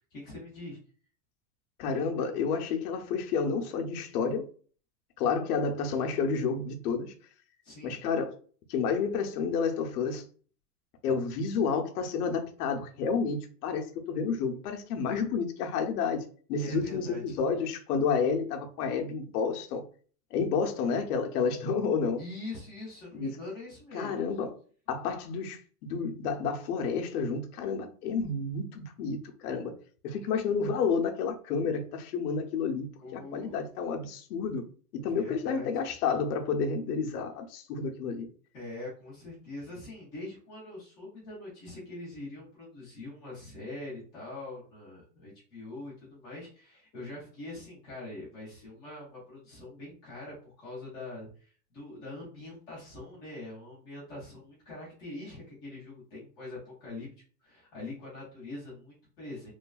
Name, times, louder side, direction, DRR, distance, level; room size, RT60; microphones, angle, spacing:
voice 1, 0.1-0.8 7.6-8.0 16.6-17.3 22.2-24.2 33.0-33.6 35.1-35.7 38.5-57.1 57.4-59.5, left 2 dB, 10° left, 0.3 m, -43 dB
voice 2, 1.8-4.5 5.2-7.2 7.8-8.4 8.7-10.2 11.0-16.2 16.5-19.8 20.3-22.2 23.1-23.4 23.9-24.5 24.9-25.6 25.9-29.7 30.0-34.6 34.9-38.3, left 5 dB, 70° left, 0.7 m, -30 dB
3.2 x 2.2 x 2.3 m
supercardioid pair, 160°, 47 cm